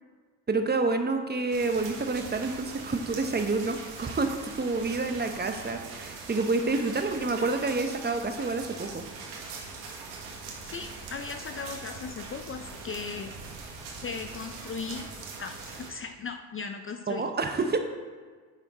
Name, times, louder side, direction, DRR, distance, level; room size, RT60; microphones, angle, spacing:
voice 1, 0.5-9.0 17.1-17.8, right 3 dB, 20° right, 6 dB, 0.9 m, -28 dB
sound 1, 1.5-15.9, right 4 dB, 85° right, 1.5 m, -42 dB
voice 2, 10.6-13.3 14.0-15.1 15.4-17.3, left 5 dB, 30° left, 6 dB, 0.5 m, -37 dB
9.1 x 5.7 x 4.2 m, 1.5 s
supercardioid pair, 70°, 44 cm